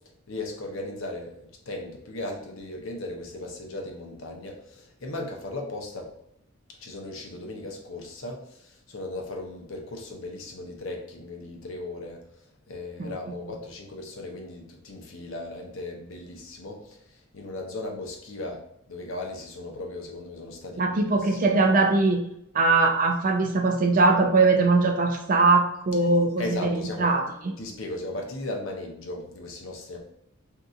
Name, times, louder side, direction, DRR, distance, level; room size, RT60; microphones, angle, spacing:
voice 1, 0.3-6.1 6.8-12.2 12.7-17.0 17.3-18.6 18.9-21.4 26.4-27.1 27.6-30.0, left 2 dB, 65° left, 1 dB, 0.7 m, -37 dB
voice 2, 20.8-22.2 22.5-27.2, right 3 dB, 40° right, 3 dB, 0.4 m, -21 dB
3.8 x 2.8 x 2.4 m, 0.75 s
head